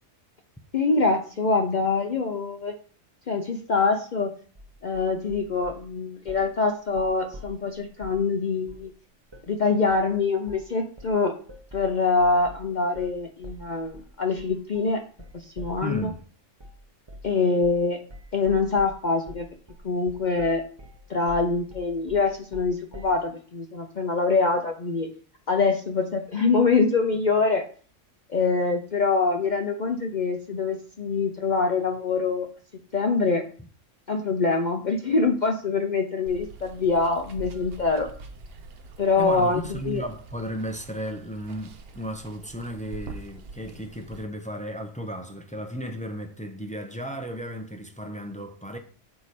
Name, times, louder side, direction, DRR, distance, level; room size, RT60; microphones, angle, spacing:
voice 1, 0.7-2.7 3.3-4.3 4.8-8.9 9.5-11.3 11.7-15.0 15.3-16.1 17.2-18.0 18.3-19.5 19.8-20.6 21.1-25.1 25.5-27.7 28.3-32.5 32.9-33.4 34.1-38.1 39.0-40.0, left 4 dB, 45° left, 0.7 m, -24 dB
sound 1, 4.6-5.9 6.3-6.6 6.9-8.3 8.7-8.9 9.3-9.5 9.9-10.1 10.5-10.7 11.0-16.2 16.6-16.8 17.1-17.4 17.6-17.9 18.1-23.2, equal, 25° right, 0.8 m, -45 dB
voice 2, 15.8-16.2 39.2-48.8, equal, 10° left, 0.5 m, -34 dB
Water, 36.3-44.2, right 3 dB, 55° right, 0.9 m, -44 dB
6.8 x 4.7 x 4.2 m
omnidirectional pair, 1.3 m